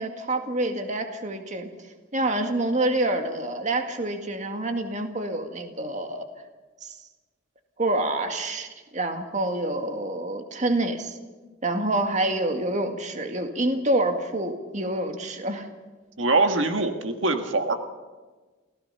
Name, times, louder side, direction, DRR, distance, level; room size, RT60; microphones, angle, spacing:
voice 1, 0.0-1.7 2.1-6.3 6.8-6.9 7.8-8.7 8.9-11.2 11.6-15.7, right 1 dB, 40° right, 5 dB, 1.9 m, -27 dB
voice 2, 16.2-17.7, right 3 dB, 80° right, 6 dB, 1.7 m, -23 dB
29.0 x 16.5 x 5.6 m, 1.3 s
head